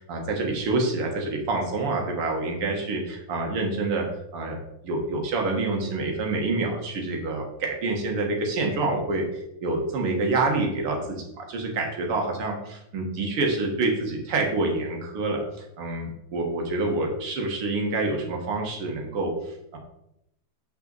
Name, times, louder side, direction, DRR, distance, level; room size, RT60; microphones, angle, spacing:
voice 1, 0.0-4.1 4.3-4.6 4.8-11.0 11.4-15.4 15.8-19.8, right 3 dB, 80° right, 1 dB, 2.4 m, -27 dB
7.7 x 5.7 x 4.0 m, 0.81 s
omnidirectional pair, 2.4 m